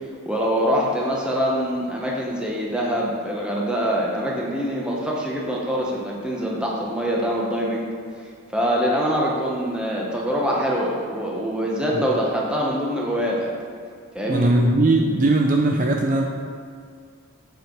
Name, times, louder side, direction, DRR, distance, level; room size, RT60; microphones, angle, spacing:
voice 1, 0.3-7.9 8.5-13.5 14.1-14.5, equal, 5° right, -3 dB, 0.9 m, -24 dB
voice 2, 14.3-16.2, right 2 dB, 40° right, 1 dB, 0.4 m, -19 dB
7.8 x 4.7 x 4.5 m, 2.2 s
head